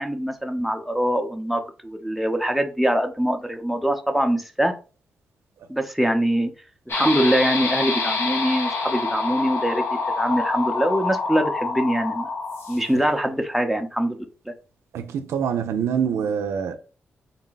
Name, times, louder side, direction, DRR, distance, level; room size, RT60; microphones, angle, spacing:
voice 1, 0.0-4.7 5.7-6.5 6.9-9.8 10.2-12.3 12.7-14.3, equal, ahead, 0.8 m, -23 dB
sound 1, 6.9-13.0, left 4 dB, 60° left, 1.0 m, -26 dB
voice 2, 14.9-16.7, right 7 dB, 85° right, 0.5 m, -25 dB
4.0 x 2.1 x 3.9 m
cardioid pair, 55°, 5 cm